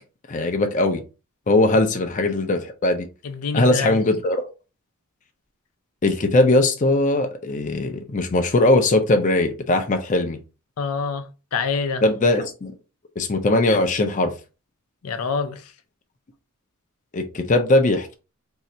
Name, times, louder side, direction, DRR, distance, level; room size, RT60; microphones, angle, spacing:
voice 1, 0.3-1.0 1.5-3.1 3.5-4.4 6.0-10.4 12.0-12.7 13.2-14.3 17.1-18.1, left 2 dB, 35° left, 0.5 m, -20 dB
voice 2, 3.2-4.0 10.8-11.2 11.5-12.0 15.0-15.6, left 5 dB, 80° left, 0.5 m, -25 dB
2.7 x 2.4 x 4.1 m
head